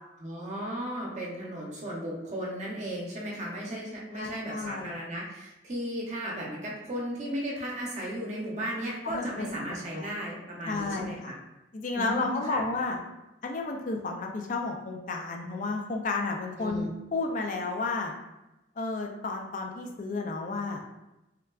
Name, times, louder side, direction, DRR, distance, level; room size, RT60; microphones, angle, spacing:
voice 1, 0.2-11.4 11.9-12.6 16.6-16.9, equal, 40° right, -4 dB, 0.7 m, -35 dB
voice 2, 4.1-4.9 9.0-10.1 10.7-11.3 11.7-13.0 13.4-18.1 18.8-21.0, left 3 dB, 45° left, 2 dB, 0.4 m, -32 dB
3.5 x 2.2 x 2.3 m, 0.96 s
head